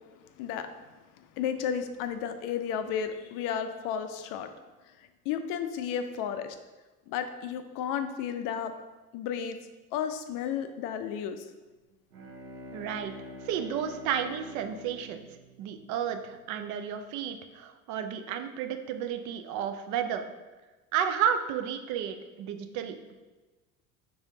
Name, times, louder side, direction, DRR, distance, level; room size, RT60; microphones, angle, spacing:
voice 1, 0.4-0.7 1.2-4.5 5.3-6.6 7.1-8.7 9.1-9.6 9.9-11.4, left 8 dB, 45° left, 9 dB, 0.5 m, -33 dB
Bowed string instrument, 11.9-16.6, left 1 dB, 80° right, 0.7 m, -46 dB
voice 2, 12.7-13.1 13.4-15.3 15.6-20.3 20.9-23.0, right 8 dB, 45° right, 7 dB, 0.5 m, -32 dB
5.3 x 3.3 x 2.7 m, 1.2 s
figure-of-eight pair, 60°, 44 cm